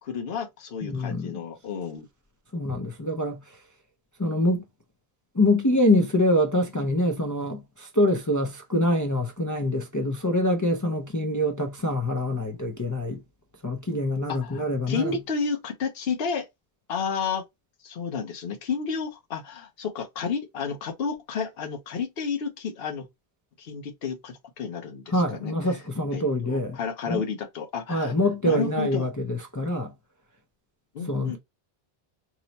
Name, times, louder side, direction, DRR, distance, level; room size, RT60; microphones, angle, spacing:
voice 1, 0.0-2.1 14.3-16.5 16.9-17.4 17.8-23.1 23.6-25.8 26.1-28.1 28.4-29.1 30.9-31.4, left 6 dB, 70° left, 1.0 m, -31 dB
voice 2, 0.8-1.4 2.5-3.4 4.2-4.6 5.3-13.2 13.6-15.2 25.1-26.8 27.1-27.2 27.9-29.9 31.1-31.4, left 1 dB, 30° left, 0.3 m, -25 dB
3.0 x 2.1 x 4.0 m
omnidirectional pair, 1.0 m